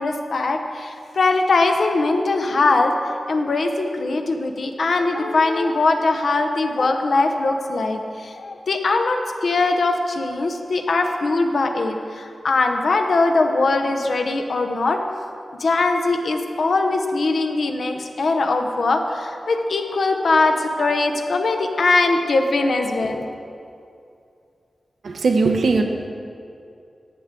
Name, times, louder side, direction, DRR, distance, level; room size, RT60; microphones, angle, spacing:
voice 1, 0.0-2.9 3.3-15.0 15.6-23.3, left 3 dB, 70° left, 5 dB, 0.8 m, -21 dB
voice 2, 25.0-25.8, right 4 dB, 85° right, 4 dB, 0.8 m, -19 dB
12.5 x 8.1 x 3.7 m, 2.5 s
wide cardioid pair, 105°, 0 cm